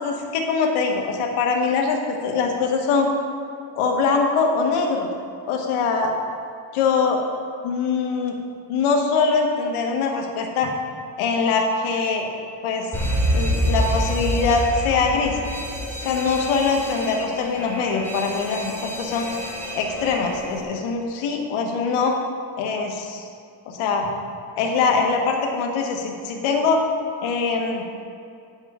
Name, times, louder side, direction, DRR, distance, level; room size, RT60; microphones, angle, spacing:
voice 1, 0.0-3.1 3.7-5.1 5.5-6.1 6.7-7.2 7.6-8.4 8.7-10.7 11.2-12.3 12.6-12.9 13.3-15.4 16.0-19.3 19.7-22.2 22.6-23.3 23.7-24.1 24.6-26.8 27.2-27.8, left 4 dB, 90° left, 2 dB, 1.4 m, -22 dB
Alarm, 12.9-20.6, equal, 5° left, 1.7 m, -27 dB
9.8 x 7.9 x 3.6 m, 2.4 s
cardioid pair, 140°, 49 cm